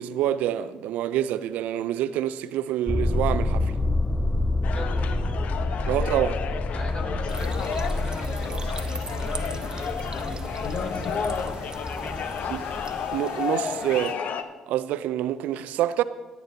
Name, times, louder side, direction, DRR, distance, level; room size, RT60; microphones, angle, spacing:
voice 1, 0.0-3.7 5.9-6.4 12.5-12.6 13.1-14.2 14.7-16.0, right 12 dB, 70° right, 0.4 m, -27 dB
sound 1, 2.9-13.2, left 2 dB, 10° left, 0.5 m, -28 dB
sound 2, 4.6-14.4, left 6 dB, 60° left, 0.7 m, -32 dB
voice 2, 4.7-5.3 6.7-11.5 11.9-12.4, left 1 dB, 40° left, 2.7 m, -41 dB
sound 3, 7.3-14.1, right 3 dB, 30° right, 1.0 m, -41 dB
17.5 x 9.4 x 2.8 m
hypercardioid pair, 50°, 3 cm